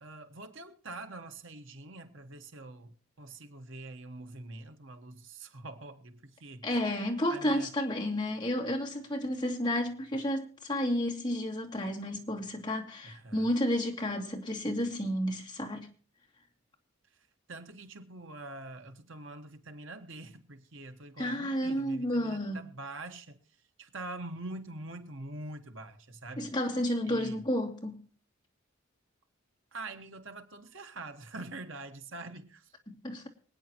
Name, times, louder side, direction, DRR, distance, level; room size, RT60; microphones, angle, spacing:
voice 1, 0.0-6.8 7.3-7.7 13.0-13.5 17.5-23.4 23.8-26.5 27.1-27.4 29.7-32.7, right 2 dB, 65° right, 1.4 m, -45 dB
voice 2, 6.6-15.9 21.2-22.7 26.4-28.0 32.9-33.3, equal, 20° left, 2.6 m, -31 dB
26.0 x 9.4 x 3.0 m
head